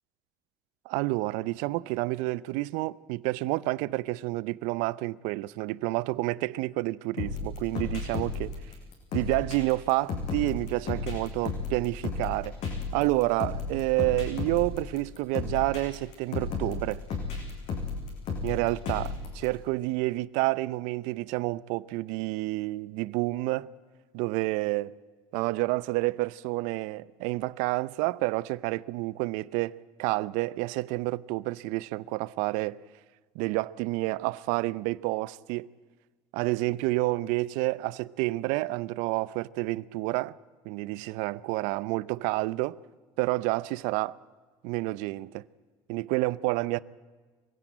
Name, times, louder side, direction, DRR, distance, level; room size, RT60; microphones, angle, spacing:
voice 1, 0.9-8.5 9.1-12.6 12.9-17.0 18.4-23.7 24.1-25.0 25.3-32.8 33.3-35.7 36.3-40.3 40.6-42.8 43.2-44.2 44.6-45.4 45.9-46.8, right 20 dB, 70° right, 0.6 m, -29 dB
sound 1, 7.2-19.4, left 4 dB, 60° left, 7.2 m, -34 dB
24.5 x 16.5 x 9.0 m
hypercardioid pair, 75°, 13 cm